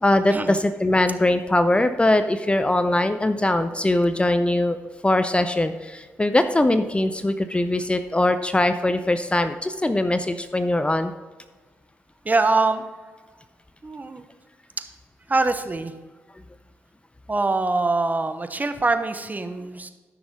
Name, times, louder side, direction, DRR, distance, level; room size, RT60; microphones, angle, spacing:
voice 1, 0.0-4.8 5.0-11.1, left 1 dB, 15° left, 10 dB, 0.6 m, -21 dB
voice 2, 12.2-12.8 13.8-14.2 15.3-15.9 17.3-19.9, right 3 dB, 25° right, 9 dB, 0.9 m, -23 dB
13.5 x 6.1 x 3.6 m, 1.3 s
hypercardioid pair, 40°, 6 cm